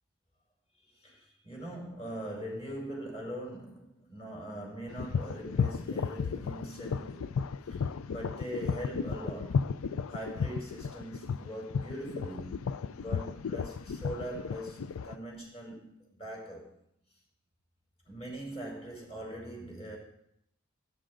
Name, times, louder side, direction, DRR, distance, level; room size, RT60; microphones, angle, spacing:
voice 1, 1.0-7.4 7.7-9.7 10.1-16.7 18.0-20.0, right 1 dB, 30° left, 4.9 m, -42 dB
sound 1, 4.9-15.1, left 6 dB, 80° left, 0.4 m, -34 dB
17.5 x 10.5 x 3.8 m
head